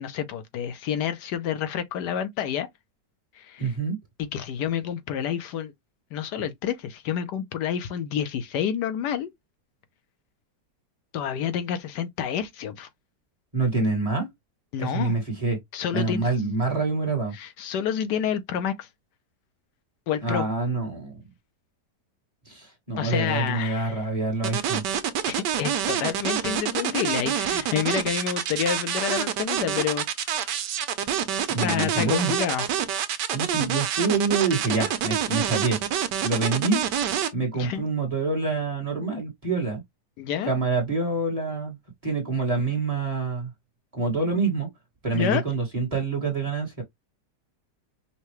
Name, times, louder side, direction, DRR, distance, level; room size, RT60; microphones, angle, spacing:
voice 1, 0.0-2.7 3.3-3.8 4.3-5.7 6.1-9.3 11.1-12.9 14.7-15.1 15.7-16.3 17.3-18.9 20.1-20.5 23.0-24.0 25.3-30.6 31.6-32.7 37.5-37.8 40.2-40.5 45.1-45.4, left 9 dB, 75° left, 1.2 m, -29 dB
voice 2, 3.6-4.0 13.5-14.3 14.8-15.6 15.9-17.3 20.2-21.2 22.4-24.8 31.5-32.3 33.3-35.8 36.2-36.8 37.3-39.8 40.4-41.8 42.0-43.5 43.9-44.7 45.0-46.8, right 3 dB, 25° right, 1.3 m, -26 dB
sound 1, 24.4-37.3, right 9 dB, 80° right, 1.3 m, -27 dB
5.6 x 2.2 x 3.1 m
omnidirectional pair, 1.8 m